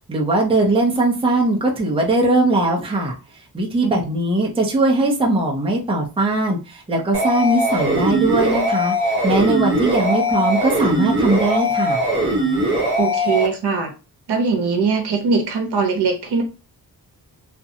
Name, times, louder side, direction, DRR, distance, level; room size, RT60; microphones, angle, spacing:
voice 1, 0.1-3.1 3.5-6.6 6.9-12.0, right 2 dB, 15° right, 0.5 m, -19 dB
sound 1, 7.1-13.5, equal, 30° right, 0.9 m, -20 dB
voice 2, 13.0-13.9 14.3-16.4, right 4 dB, 75° right, 0.8 m, -21 dB
2.5 x 2.1 x 2.8 m
wide cardioid pair, 160°, 40 cm